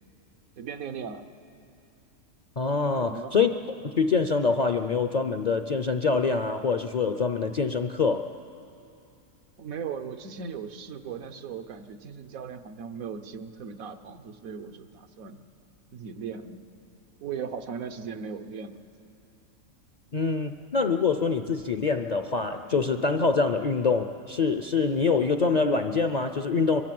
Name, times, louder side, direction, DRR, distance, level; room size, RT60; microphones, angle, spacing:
voice 1, 0.6-1.3 2.9-3.4 9.6-15.4 15.9-16.6 17.2-18.8, right 6 dB, 85° right, 8 dB, 1.4 m, -38 dB
voice 2, 2.6-3.5 3.8-8.3 20.1-26.8, left 4 dB, 50° left, 8 dB, 0.5 m, -25 dB
25.0 x 22.5 x 7.7 m, 2.6 s
omnidirectional pair, 1.4 m